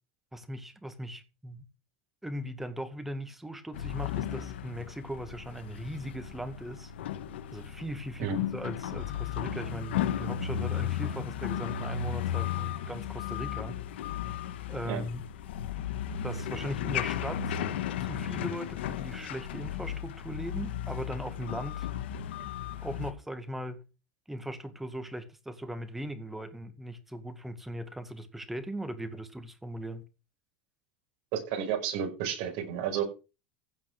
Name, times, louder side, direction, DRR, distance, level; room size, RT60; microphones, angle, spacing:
voice 1, 0.3-1.6 2.2-6.9 7.5-13.8 14.7-15.2 16.2-17.6 18.0-21.9 22.8-23.8 24.3-30.0, equal, 5° right, 1.9 m, -39 dB
sound 1, 3.7-23.1, left 10 dB, 90° left, 1.6 m, -35 dB
voice 2, 31.3-33.0, right 8 dB, 60° right, 5.5 m, -31 dB
15.5 x 6.0 x 6.1 m
supercardioid pair, 135°, 6 cm